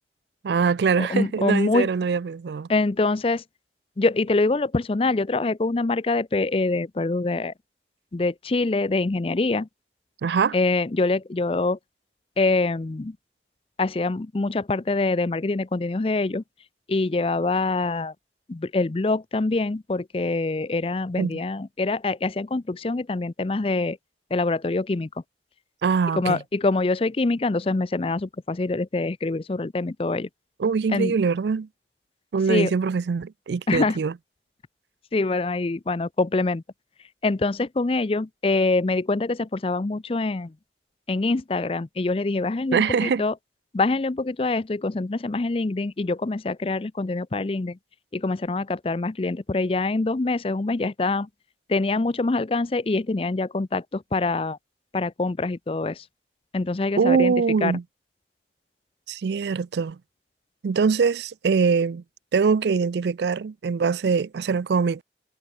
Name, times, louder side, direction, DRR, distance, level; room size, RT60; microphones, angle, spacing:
voice 1, 0.4-2.7 10.2-10.6 21.2-21.3 25.8-26.4 30.6-31.7 32.3-34.1 42.7-43.2 57.0-57.8 59.1-60.0 60.6-62.0 62.3-65.0, right 5 dB, 70° right, 0.4 m, -23 dB
voice 2, 1.0-1.9 2.7-3.4 4.0-7.5 8.1-9.7 10.5-11.8 12.4-13.2 13.8-16.4 16.9-18.1 18.5-24.0 24.3-25.1 26.1-30.3 30.9-31.2 32.5-32.7 33.7-34.0 35.1-36.6 37.2-40.5 41.1-43.3 43.7-47.8 48.1-51.3 51.7-54.6 54.9-56.0 56.5-57.3 57.6-57.7, left 3 dB, 30° left, 0.5 m, -25 dB
head